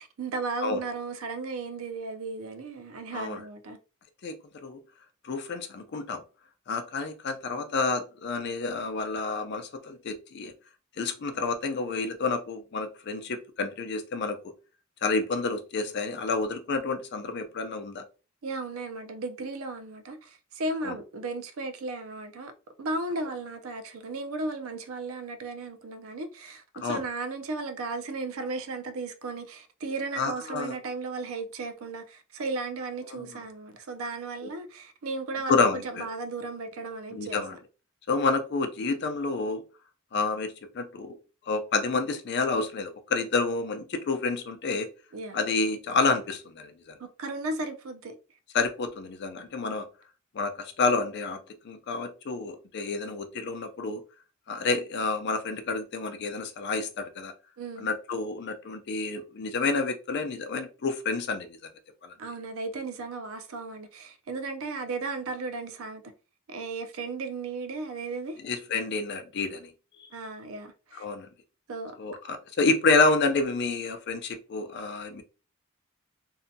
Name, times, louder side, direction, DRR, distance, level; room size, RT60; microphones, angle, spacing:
voice 1, 0.0-3.8 18.4-22.5 22.8-37.4 45.1-45.4 47.0-48.2 57.6-57.9 62.2-66.0 66.5-68.4 70.1-71.0 71.7-72.0, right 3 dB, 75° right, 0.5 m, -35 dB
voice 2, 4.2-4.8 5.2-6.2 6.7-10.5 11.0-14.4 15.0-18.0 20.8-21.0 26.8-27.0 30.2-30.7 33.1-33.4 34.4-34.5 35.5-36.1 37.1-37.6 38.1-39.6 40.1-41.2 41.5-44.9 45.3-47.0 48.5-49.9 50.3-54.0 54.5-57.3 57.8-61.6 62.0-62.1 68.4-69.7 70.9-71.3 72.0-75.2, left 3 dB, 55° left, 0.4 m, -29 dB
2.7 x 2.2 x 2.6 m
head